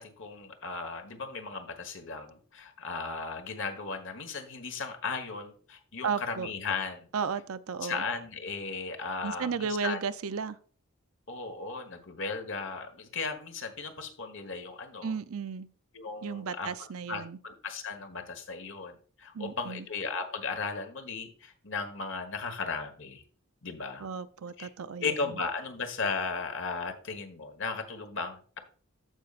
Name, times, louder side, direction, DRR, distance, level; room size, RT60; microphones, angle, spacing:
voice 1, 0.0-7.1 7.8-10.0 11.3-15.1 15.9-23.2 23.6-24.1 24.6-24.7 25.0-28.6, left 4 dB, 60° left, 1.4 m, -36 dB
voice 2, 6.0-6.5 7.1-8.0 9.2-10.6 15.0-15.7 16.2-17.4 19.3-19.9 24.0-25.1, right 5 dB, 85° right, 0.5 m, -34 dB
14.5 x 5.4 x 2.5 m
head